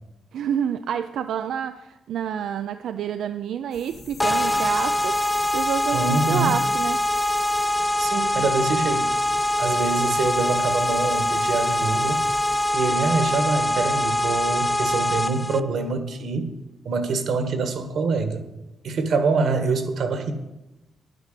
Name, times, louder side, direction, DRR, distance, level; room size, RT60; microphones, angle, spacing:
voice 1, 0.3-7.0, right 9 dB, 75° right, 9 dB, 0.5 m, -28 dB
sound 1, 3.7-12.7, left 4 dB, 35° left, 1.2 m, -46 dB
sound 2, 4.2-15.6, left 1 dB, 10° left, 0.3 m, -23 dB
voice 2, 5.9-6.6 8.0-9.1 9.6-12.2 12.7-16.5 16.8-18.4 18.8-20.3, right 4 dB, 60° right, 7 dB, 1.5 m, -25 dB
11.0 x 9.5 x 6.6 m, 0.96 s
wide cardioid pair, 175°, 0 cm